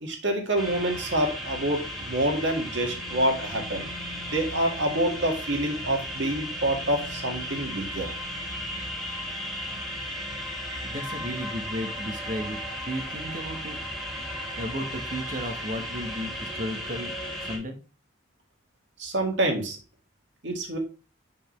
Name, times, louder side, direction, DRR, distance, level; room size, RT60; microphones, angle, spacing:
voice 1, 0.0-8.1 19.0-19.8 20.4-20.8, right 1 dB, 60° right, 2 dB, 1.9 m, -27 dB
sound 1, 0.6-17.6, equal, ahead, 2.1 m, -35 dB
voice 2, 10.8-12.6 12.9-13.8 14.6-17.1 17.4-17.8, equal, 40° right, 6 dB, 1.2 m, -34 dB
7.0 x 5.3 x 3.2 m, 0.34 s
head